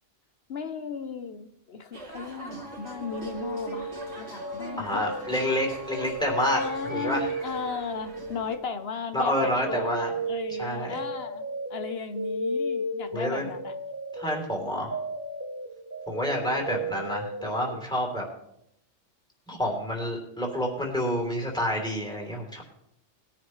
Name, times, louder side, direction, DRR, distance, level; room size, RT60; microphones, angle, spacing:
voice 1, 0.5-5.1 6.5-9.9 10.3-13.8, left 5 dB, 60° left, 9 dB, 0.9 m, -36 dB
sound 1, 1.9-8.5, right 2 dB, 60° right, 2.8 m, -44 dB
Wind instrument woodwind instrument, 2.6-6.9, right 1 dB, 85° right, 2.1 m, -46 dB
sound 2, 2.9-8.9 9.2-17.8, right 1 dB, 15° right, 0.7 m, -35 dB
voice 2, 4.8-6.6 6.9-7.3 9.1-10.1 10.5-11.0 13.1-13.5 14.1-15.0 16.1-18.2 19.5-22.6, equal, 5° left, 0 dB, 3.3 m, -28 dB
20.0 x 10.5 x 3.2 m, 0.77 s
omnidirectional pair, 1.3 m